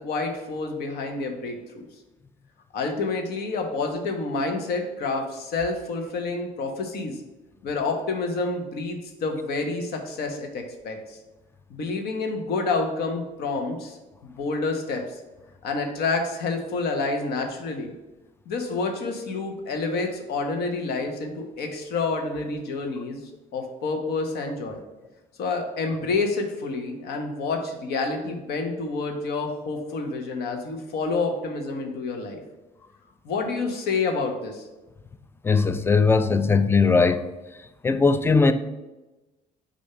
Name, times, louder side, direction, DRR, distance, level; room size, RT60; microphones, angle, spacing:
voice 1, 0.0-1.8 2.7-7.2 7.6-11.2 11.7-14.0 14.2-15.2 15.6-17.9 18.5-23.2 23.5-24.8 25.4-32.4 33.2-34.6, left 3 dB, 70° left, 1.0 m, -28 dB
voice 2, 35.4-37.2 37.6-38.5, left 4 dB, 15° left, 0.4 m, -19 dB
6.6 x 2.7 x 5.5 m
cardioid pair, 110°, 17 cm